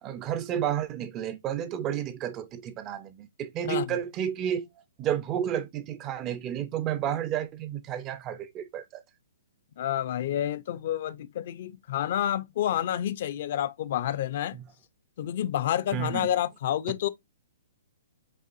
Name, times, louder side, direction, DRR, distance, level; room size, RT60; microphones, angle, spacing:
voice 1, 0.0-4.7 5.0-9.0 14.5-14.6 15.9-16.3, right 10 dB, 20° right, 0.4 m, -31 dB
voice 2, 9.8-14.6 15.2-17.1, left 11 dB, 45° left, 0.5 m, -29 dB
5.4 x 3.4 x 2.5 m
hypercardioid pair, 165°, 0 cm